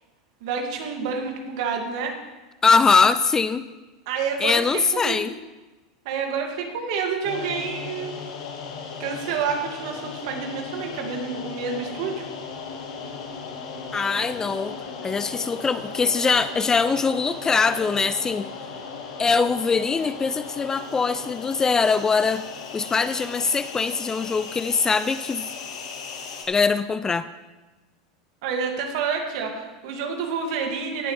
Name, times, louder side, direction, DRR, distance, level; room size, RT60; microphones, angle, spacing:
voice 1, 0.4-2.1 4.1-5.2 6.0-8.3 9.0-12.3 28.4-31.1, right 5 dB, 65° right, 2 dB, 2.4 m, -28 dB
voice 2, 2.6-3.6 4.4-5.3 13.9-14.8 15.0-18.5 19.2-22.4 22.7-25.5 26.5-27.3, left 5 dB, 20° left, 14 dB, 0.4 m, -22 dB
sound 1, 7.2-26.4, left 5 dB, 80° left, 2.0 m, -37 dB
18.5 x 7.7 x 3.4 m, 1.2 s
supercardioid pair, 115°, 3 cm